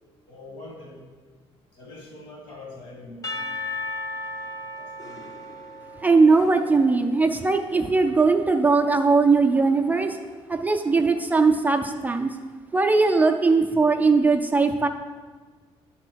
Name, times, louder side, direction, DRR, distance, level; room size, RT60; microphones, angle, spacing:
voice 1, 0.3-1.1 1.7-3.4 4.8-5.3, left 2 dB, 60° left, 0 dB, 2.5 m, -43 dB
Percussion / Church bell, 3.2-7.4, left 2 dB, 35° left, 0.7 m, -35 dB
voice 2, 6.0-10.2 10.5-12.3 12.7-14.9, right 4 dB, 15° right, 3 dB, 0.4 m, -20 dB
10.0 x 4.2 x 6.2 m, 1.5 s
cardioid pair, 135°, 10 cm